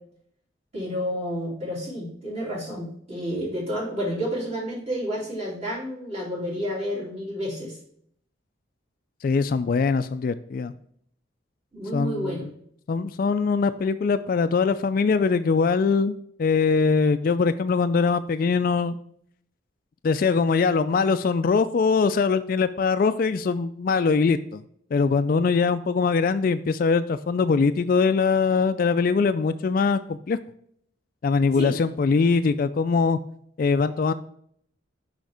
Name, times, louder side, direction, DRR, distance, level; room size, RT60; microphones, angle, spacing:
voice 1, 0.7-7.8 11.7-12.5 31.6-31.7, equal, 35° right, -4 dB, 2.9 m, -30 dB
voice 2, 9.2-10.7 11.9-12.5 12.9-19.0 20.0-24.6 24.9-30.4 31.2-33.2 33.6-34.1, left 5 dB, 45° left, 12 dB, 0.3 m, -22 dB
6.3 x 5.7 x 3.4 m, 0.65 s
head